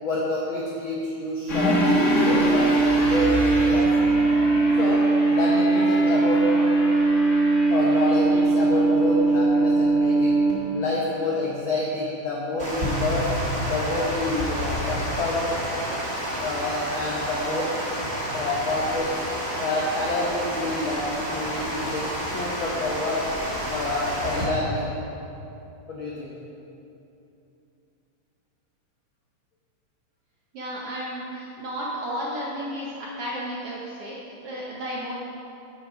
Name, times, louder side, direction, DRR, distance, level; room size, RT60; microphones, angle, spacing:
voice 1, 0.0-3.9 4.7-6.5 7.7-10.4 10.7-13.3 13.6-15.5 16.3-17.7 18.3-19.2 19.6-23.3 23.7-24.9 25.9-26.3, left 2 dB, 75° left, -3 dB, 1.1 m, -28 dB
sound 1, 1.5-10.9, right 2 dB, 40° left, 1.0 m, -20 dB
Water, 12.6-24.4, equal, 35° right, 1.0 m, -30 dB
voice 2, 30.5-35.1, equal, 70° right, -4 dB, 1.4 m, -33 dB
9.1 x 7.6 x 5.1 m, 2.8 s
omnidirectional pair, 3.6 m